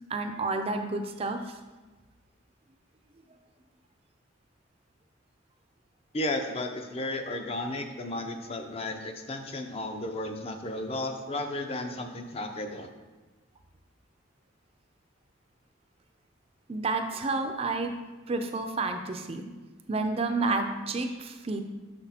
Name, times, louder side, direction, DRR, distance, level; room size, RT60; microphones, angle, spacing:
voice 1, 0.1-1.6 16.7-17.9 18.3-19.4 19.9-21.6, right 3 dB, 30° right, 6 dB, 0.4 m, -30 dB
voice 2, 6.1-12.9, left 1 dB, 30° left, 6 dB, 0.5 m, -34 dB
6.6 x 6.0 x 2.8 m, 1.2 s
head